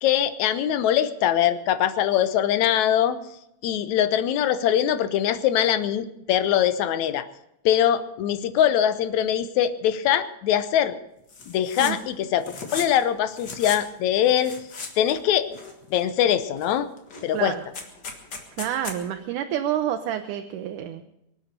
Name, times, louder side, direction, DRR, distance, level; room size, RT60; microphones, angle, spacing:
voice 1, 0.0-3.2 3.6-7.3 7.7-11.0 11.5-14.6 15.0-15.6 15.9-16.9 17.2-17.6, left 10 dB, 75° left, 12 dB, 2.1 m, -22 dB
sound 1, 11.3-11.9 12.2-13.0 13.3-13.8 14.3-15.2 15.5-16.1 16.6-16.7 17.0-19.0, left 4 dB, 40° left, 2.1 m, -37 dB
voice 2, 18.6-21.0, right 11 dB, 90° right, 6 dB, 2.3 m, -28 dB
24.0 x 8.0 x 6.6 m, 0.80 s
omnidirectional pair, 3.5 m